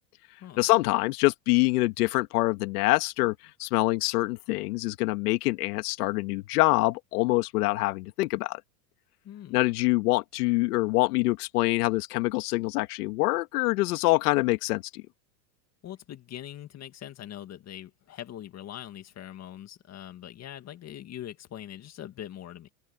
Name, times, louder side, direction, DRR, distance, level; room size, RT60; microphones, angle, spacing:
voice 1, 0.6-8.6 9.5-15.0, left 21 dB, 75° left, 2.0 m, -25 dB
voice 2, 9.2-9.6 15.8-22.7, left 11 dB, 35° left, 2.1 m, -42 dB
supercardioid pair, 125°, 46 cm